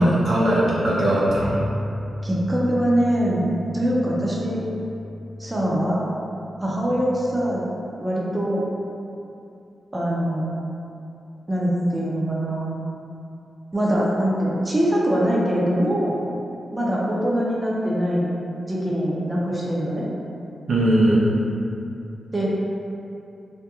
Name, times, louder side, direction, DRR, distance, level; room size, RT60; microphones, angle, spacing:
voice 1, 0.0-1.6 20.7-21.2, right 1 dB, 75° right, -7 dB, 0.4 m, -19 dB
sound 1, 1.3-7.5, left 1 dB, 65° left, 0.6 m, -35 dB
voice 2, 2.2-3.5 3.7-4.6 5.4-6.1 6.6-7.6 8.0-8.6 9.9-10.5 11.5-12.7 13.7-16.2 16.7-18.3 18.7-20.1 22.3-22.5, equal, 25° right, -5 dB, 0.6 m, -23 dB
2.3 x 2.1 x 2.9 m, 2.6 s
supercardioid pair, 40°, 0 cm